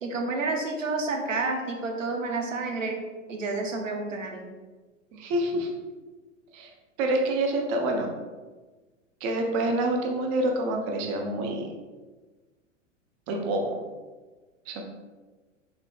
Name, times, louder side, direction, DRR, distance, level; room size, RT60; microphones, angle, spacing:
voice 1, 0.0-3.0 3.3-4.5, right 3 dB, 75° right, 2 dB, 0.8 m, -30 dB
voice 2, 5.1-5.7 6.5-6.7 7.0-8.1 9.2-11.7 13.3-13.8 14.7-14.8, right 1 dB, 25° right, 2 dB, 0.4 m, -27 dB
4.0 x 3.8 x 2.3 m, 1.3 s
figure-of-eight pair, 95°, 38 cm